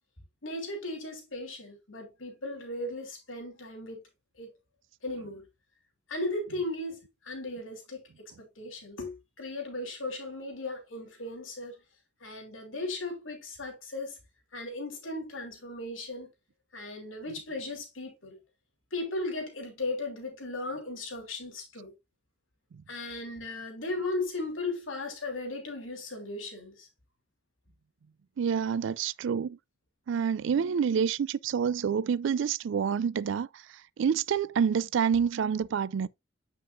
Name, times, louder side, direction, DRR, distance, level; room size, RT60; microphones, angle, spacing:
voice 1, 0.4-4.0 4.4-4.6 5.0-5.4 6.1-8.0 8.4-11.8 12.2-14.2 14.5-16.3 16.7-18.4 18.9-21.9 22.9-26.9, left 2 dB, 80° left, 3.0 m, -36 dB
voice 2, 28.4-29.6 30.1-33.5 34.0-36.1, right 7 dB, 70° right, 0.3 m, -27 dB
7.7 x 5.9 x 2.6 m
head